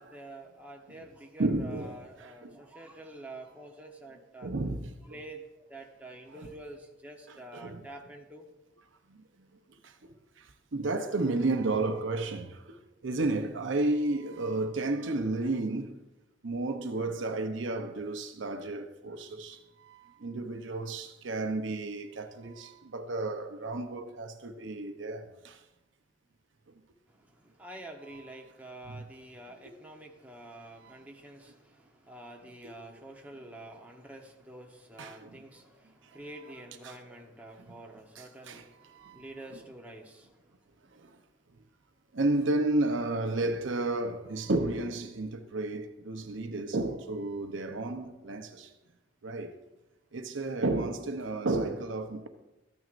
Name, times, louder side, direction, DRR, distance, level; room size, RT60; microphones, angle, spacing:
voice 1, 0.0-4.5 5.1-8.4 27.6-31.6 32.1-38.7 39.0-40.3, right 1 dB, 10° right, 1.0 m, -47 dB
voice 2, 1.4-2.6 4.4-5.0 6.3-6.5 7.3-7.8 9.1-9.2 9.8-9.9 10.4-12.8 13.0-16.0 16.4-25.6 28.1-28.2 28.9-29.1 30.8-31.0 32.6-32.7 35.0-35.4 36.5-36.6 36.8-37.0 37.7-37.8 38.2-39.6 40.9-41.1 42.1-48.7 49.2-49.5 50.1-52.3, right 2 dB, 75° right, 0.8 m, -32 dB
14.0 x 9.2 x 2.6 m
head